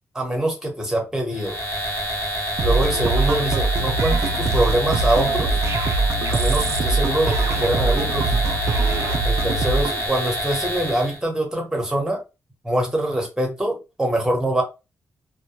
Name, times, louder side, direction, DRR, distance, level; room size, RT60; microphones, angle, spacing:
voice 1, 0.1-1.6 2.6-5.6 6.3-8.4 9.2-12.2 12.6-14.6, right 1 dB, 10° right, 0.9 m, -24 dB
sound 1, 1.3-11.2, equal, 55° left, 1.0 m, -27 dB
sound 2, 2.6-10.0, right 3 dB, 60° right, 0.3 m, -22 dB
2.1 x 2.1 x 2.8 m
wide cardioid pair, 125°, 5 cm